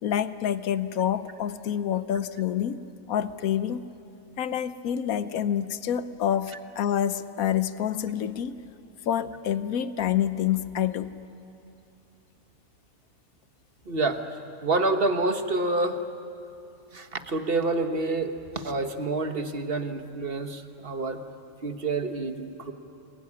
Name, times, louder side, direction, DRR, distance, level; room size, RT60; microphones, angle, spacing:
voice 1, 0.0-2.8 3.1-3.8 4.4-8.6 9.1-11.1, left 10 dB, 80° left, 12 dB, 1.3 m, -27 dB
voice 2, 13.8-16.0 16.9-21.2 21.6-22.7, right 2 dB, 45° right, 7 dB, 1.6 m, -28 dB
26.0 x 21.5 x 9.9 m, 2.7 s
omnidirectional pair, 1.5 m